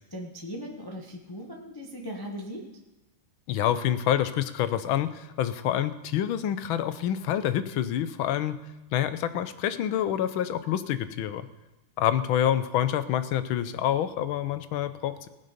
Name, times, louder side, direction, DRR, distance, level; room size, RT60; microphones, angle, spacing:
voice 1, 0.1-2.6, equal, 15° left, 0 dB, 1.1 m, -38 dB
voice 2, 3.5-8.6 8.9-11.5 12.0-15.3, left 10 dB, 75° left, 13 dB, 1.5 m, -27 dB
19.5 x 8.1 x 5.1 m, 1.0 s
omnidirectional pair, 2.3 m